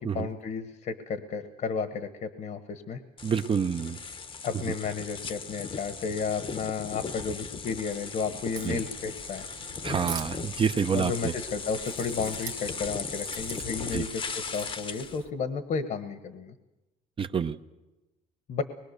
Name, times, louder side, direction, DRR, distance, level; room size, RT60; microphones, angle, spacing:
voice 1, 0.0-3.0 4.4-9.5 10.9-16.5 18.5-18.6, left 5 dB, 55° left, 10 dB, 1.3 m, -33 dB
sound 1, 3.2-15.2, left 5 dB, 30° left, 0.9 m, -38 dB
voice 2, 3.2-4.0 8.7-8.8 9.8-11.3 13.9-14.0 17.2-17.5, right 6 dB, 30° right, 9 dB, 0.7 m, -27 dB
Crack, 8.4-15.3, right 8 dB, 60° right, 1.5 m, -45 dB
24.0 x 21.5 x 6.7 m, 1.0 s
cardioid pair, 110°, 17 cm